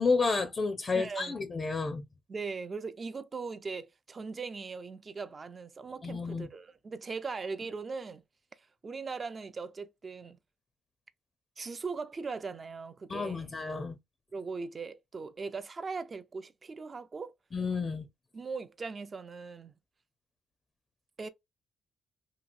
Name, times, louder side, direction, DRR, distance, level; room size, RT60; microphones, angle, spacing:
voice 1, 0.0-2.0 6.0-6.5 13.1-14.0 17.5-18.0, left 4 dB, 35° left, 0.5 m, -30 dB
voice 2, 0.9-1.3 2.3-8.2 8.8-10.4 11.6-13.5 14.3-17.3 18.3-19.7 21.2-21.3, right 4 dB, 35° right, 0.5 m, -39 dB
2.9 x 2.7 x 2.5 m
cardioid pair, 90°, 0 cm